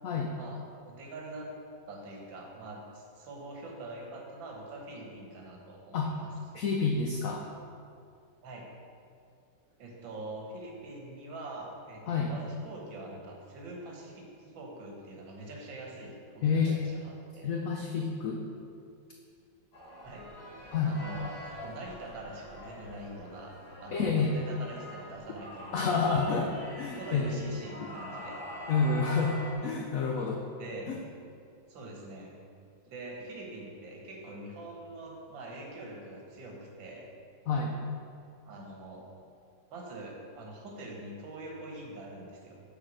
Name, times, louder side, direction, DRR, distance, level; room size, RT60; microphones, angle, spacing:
voice 1, 0.3-1.5 1.9-6.3 8.4-8.7 9.8-17.5 20.0-20.2 20.8-21.3 21.6-26.4 26.8-28.4 29.6-29.7 30.6-30.9 31.7-32.3 32.9-37.1 38.4-39.1 39.7-42.6, right 2 dB, 80° right, 0 dB, 1.8 m, -44 dB
voice 2, 6.5-7.5 12.1-12.3 16.4-16.8 17.4-18.4 20.7-21.0 23.9-24.4 25.7-27.4 28.7-30.4 30.9-31.0 37.5-37.8, left 4 dB, 80° left, 1 dB, 0.7 m, -29 dB
sound 1, 19.7-29.5, equal, 55° left, 2.0 m, -44 dB
6.7 x 4.1 x 6.1 m, 2.4 s
omnidirectional pair, 2.1 m